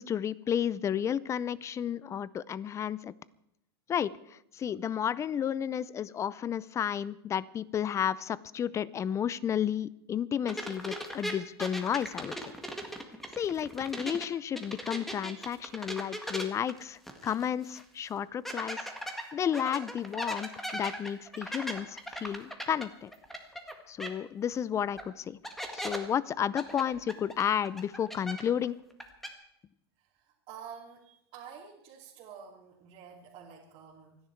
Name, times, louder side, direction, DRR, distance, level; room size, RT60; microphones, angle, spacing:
voice 1, 0.0-3.1 3.9-12.3 13.4-18.8 19.3-23.1 23.9-25.4 25.7-28.8, left 9 dB, 20° left, 21 dB, 0.5 m, -32 dB
sound 1, 10.5-14.3 14.6-17.5 17.8-17.9 18.5-23.7 24.0-24.1 25.0-25.1 25.4-26.0 26.6-28.7 28.9-29.3, equal, ahead, 1.8 m, -38 dB
voice 2, 30.5-34.2, right 7 dB, 40° right, -5 dB, 2.7 m, -48 dB
27.5 x 10.5 x 4.6 m, 0.78 s
supercardioid pair, 130°, 14 cm